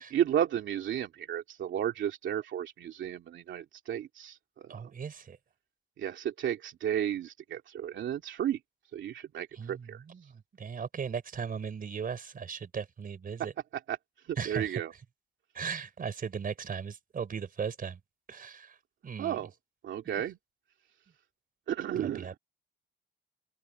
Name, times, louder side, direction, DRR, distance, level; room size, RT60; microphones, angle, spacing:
voice 1, 0.1-4.8 6.0-8.6 8.9-10.0 13.9-14.0 14.3-14.9 19.2-19.5 19.8-20.4 21.7-22.3, right 10 dB, 70° right, 2.5 m, -33 dB
voice 2, 4.7-5.4 9.5-13.5 14.4-14.8 15.5-18.0 18.3-18.8 19.0-19.4 20.0-20.2 22.0-22.4, right 6 dB, 45° right, 4.3 m, -37 dB
cardioid pair, 90°, 20 cm